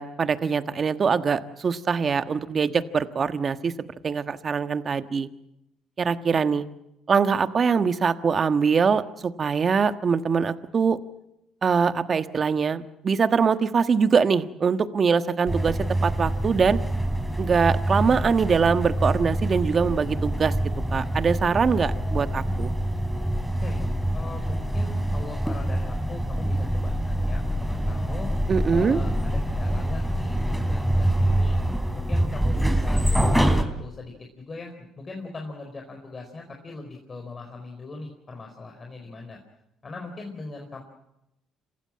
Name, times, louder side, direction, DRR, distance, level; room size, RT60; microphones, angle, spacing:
voice 1, 0.0-5.3 6.0-6.6 7.1-11.0 11.6-16.8 17.4-20.5 20.9-22.7 28.5-29.0, right 5 dB, 45° right, 10 dB, 1.4 m, -23 dB
sound 1, 15.5-33.6, right 1 dB, 5° right, 3.3 m, -25 dB
voice 2, 24.1-28.3 28.7-31.6 31.9-39.4 39.8-40.8, left 3 dB, 35° left, 2 dB, 4.5 m, -40 dB
27.0 x 15.5 x 8.9 m, 0.86 s
supercardioid pair, 70°, 0 cm